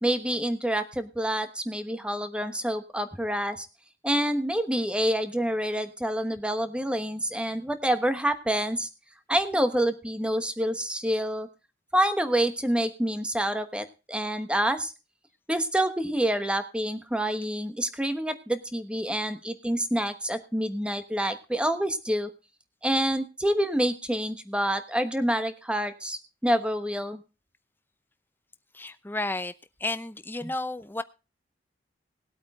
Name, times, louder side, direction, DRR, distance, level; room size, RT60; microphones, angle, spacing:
voice 1, 0.0-3.7 4.0-8.9 9.3-11.5 11.9-14.9 15.5-22.3 22.8-27.2 30.4-30.5, right 1 dB, 5° right, 1.2 m, -27 dB
voice 2, 28.7-29.5 29.8-31.0, left 2 dB, 10° left, 0.7 m, -32 dB
19.5 x 8.5 x 3.7 m
head